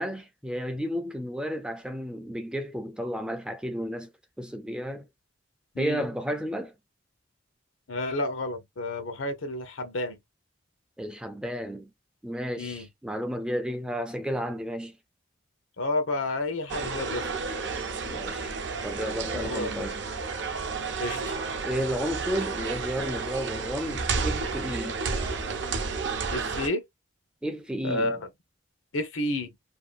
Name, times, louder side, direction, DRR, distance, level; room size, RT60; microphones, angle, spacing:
voice 1, 0.0-4.1 4.4-5.1 5.8-6.7 11.0-11.9 12.2-15.0 18.1-18.6 18.8-20.0 21.6-25.0 27.4-28.2, equal, 5° right, 0.3 m, -32 dB
voice 2, 7.9-10.2 12.6-12.9 15.8-17.2 19.3-19.9 21.0-21.4 26.3-26.8 27.8-28.2 28.9-29.5, left 2 dB, 90° left, 0.8 m, -30 dB
sound 1, 16.7-26.7, right 4 dB, 65° right, 0.6 m, -31 dB
2.7 x 2.3 x 2.5 m
head